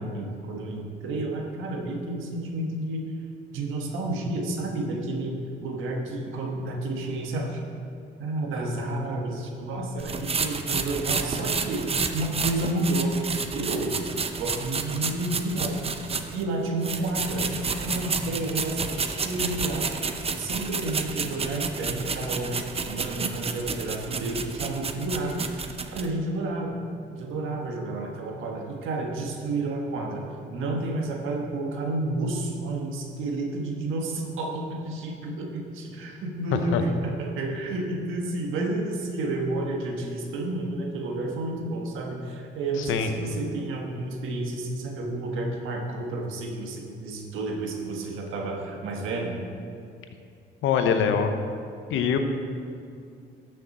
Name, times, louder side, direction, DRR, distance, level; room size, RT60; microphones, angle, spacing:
voice 1, 0.0-3.1 3.5-7.6 8.2-13.1 13.5-14.0 14.4-15.8 16.3-20.1 20.3-26.8 27.1-30.2 30.5-49.4, right 2 dB, 90° right, 1 dB, 1.4 m, -30 dB
sound 1, 10.0-16.4 16.8-26.1, right 4 dB, 30° right, 0.7 m, -30 dB
voice 2, 42.8-43.1 50.6-51.3 51.9-52.2, left 7 dB, 85° left, 6 dB, 0.8 m, -23 dB
13.0 x 6.4 x 4.2 m, 2.4 s
cardioid pair, 90°, 20 cm